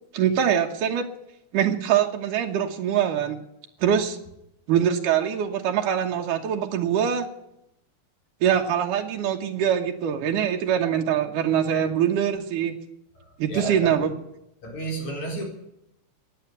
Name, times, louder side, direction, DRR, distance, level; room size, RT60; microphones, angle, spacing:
voice 1, 0.1-1.1 1.5-3.4 3.8-4.2 4.7-7.3 8.4-12.8 13.4-14.1, right 9 dB, 90° right, 2 dB, 2.8 m, -23 dB
voice 2, 13.5-14.0 14.6-15.4, right 2 dB, 65° left, 1 dB, 5.5 m, -32 dB
15.5 x 9.9 x 9.3 m, 0.82 s
omnidirectional pair, 3.6 m